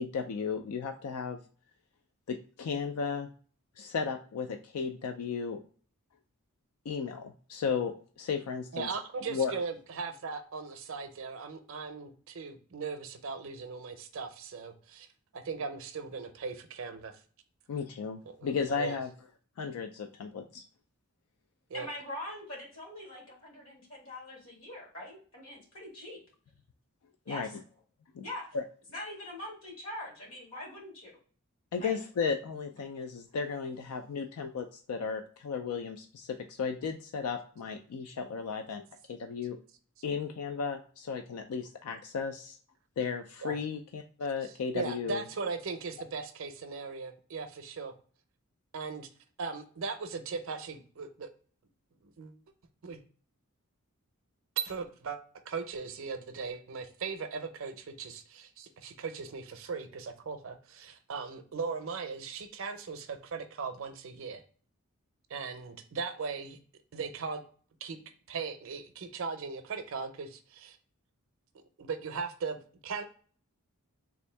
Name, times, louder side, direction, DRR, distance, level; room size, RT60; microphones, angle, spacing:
voice 1, 0.0-1.4 2.3-3.3 3.8-5.6 6.9-8.9 9.3-9.6 17.7-19.1 19.6-20.6 27.3-27.5 28.1-28.2 28.5-28.6 31.7-38.8 39.1-39.6 40.0-42.6 43.0-45.2, left 5 dB, 80° left, 6 dB, 0.4 m, -34 dB
voice 2, 8.7-15.1 15.3-17.2 18.3-18.5 18.8-19.0 21.7-21.9 43.4-43.5 44.7-47.9 48.7-49.1 49.4-51.3 52.0-52.3 52.8-53.0 54.6-55.2 55.5-64.4 65.3-66.6 66.9-67.4 67.8-68.0 68.3-70.8 71.8-72.6 72.8-73.0, right 5 dB, 60° right, 7 dB, 0.5 m, -38 dB
voice 3, 21.7-26.2 27.2-27.5 28.2-28.5 28.9-31.1 31.8-32.0, left 1 dB, 65° left, -3 dB, 1.8 m, -43 dB
3.5 x 2.6 x 3.2 m, 0.43 s
head